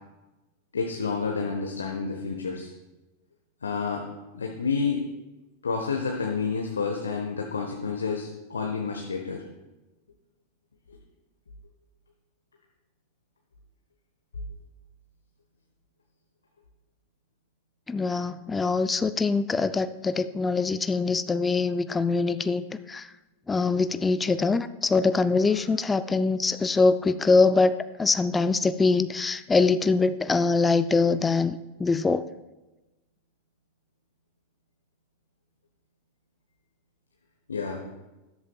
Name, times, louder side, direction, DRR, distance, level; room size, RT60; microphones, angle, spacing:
voice 1, 0.7-2.7 3.6-4.1 4.3-5.1 5.6-9.4 25.4-25.6 37.5-37.8, left 5 dB, 70° left, 1 dB, 1.0 m, -29 dB
voice 2, 17.9-23.1 23.5-32.2, left 4 dB, 15° left, 13 dB, 0.4 m, -23 dB
12.5 x 11.0 x 2.4 m, 1.1 s
figure-of-eight pair, 90°, 0 cm